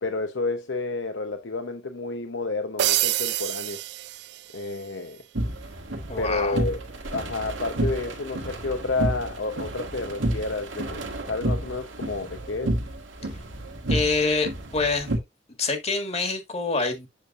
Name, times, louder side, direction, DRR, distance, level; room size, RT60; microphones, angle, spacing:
voice 1, 0.0-3.8 4.5-5.2 6.2-6.8 7.1-12.7, left 3 dB, 70° left, 0.8 m, -30 dB
sound 1, 2.8-4.9, right 14 dB, 60° right, 0.3 m, -27 dB
sound 2, 5.3-15.2, right 1 dB, 85° right, 1.7 m, -30 dB
voice 2, 6.1-6.6 13.9-15.1 15.6-17.1, left 3 dB, 35° left, 1.7 m, -26 dB
8.0 x 6.5 x 2.5 m
head